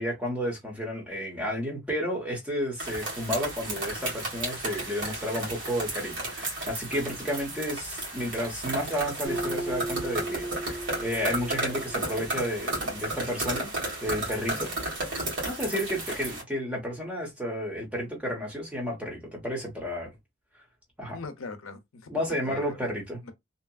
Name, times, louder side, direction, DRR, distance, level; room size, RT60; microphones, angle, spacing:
voice 1, 0.0-13.7 14.0-14.7 15.4-20.1 21.0-21.2 22.1-23.2, equal, 5° right, 1.0 m, -32 dB
sound 1, 2.8-16.4, right 2 dB, 65° right, 1.4 m, -33 dB
Acoustic guitar, 9.2-12.7, right 2 dB, 85° right, 0.9 m, -36 dB
voice 2, 21.1-22.7 23.2-23.3, left 4 dB, 85° left, 0.6 m, -41 dB
2.8 x 2.4 x 2.3 m
head